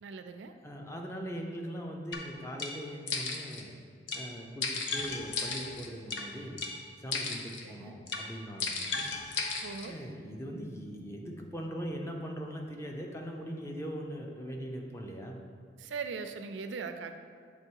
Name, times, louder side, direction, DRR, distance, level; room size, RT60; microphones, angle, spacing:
voice 1, 0.0-0.5 7.6-8.0 9.6-10.0 15.8-17.2, right 5 dB, 85° right, 8 dB, 0.4 m, -40 dB
voice 2, 0.6-3.7 4.1-6.6 7.0-8.7 9.8-15.4, equal, 15° left, 1 dB, 0.6 m, -40 dB
sound 1, 2.1-2.2 2.6-2.7 3.1-3.6 4.1-4.2 4.6-6.2 6.6-6.7 7.1-7.6 8.1-8.2 8.6-9.9, left 4 dB, 85° left, 0.7 m, -35 dB
8.0 x 3.1 x 4.6 m, 2.1 s
head